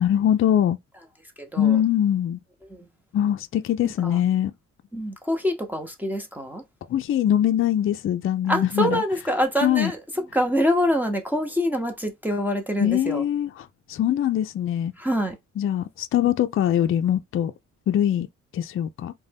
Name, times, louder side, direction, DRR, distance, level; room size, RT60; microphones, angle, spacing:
voice 1, 0.0-0.8 1.6-2.4 3.1-4.5 6.9-9.0 9.6-9.9 12.8-13.5 13.9-14.9 15.6-17.5 17.9-18.3 18.5-19.1, left 10 dB, 45° left, 0.4 m, -22 dB
voice 2, 1.4-1.8 2.6-2.9 3.8-4.2 4.9-6.6 8.5-13.2 15.0-15.4, equal, 5° right, 0.7 m, -25 dB
2.5 x 2.2 x 3.4 m
cardioid pair, 70°, 30 cm